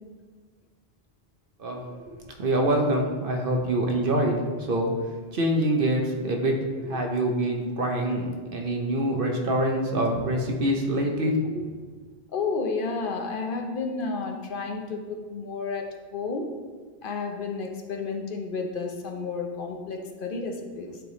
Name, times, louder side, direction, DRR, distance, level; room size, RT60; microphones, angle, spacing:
voice 1, 1.6-1.9 2.4-4.9 5.3-11.6, right 1 dB, 60° right, 2 dB, 0.9 m, -25 dB
voice 2, 12.3-15.8 16.1-16.5 17.0-21.0, left 4 dB, 60° left, 3 dB, 0.8 m, -31 dB
7.9 x 3.4 x 3.9 m, 1.4 s
omnidirectional pair, 1.1 m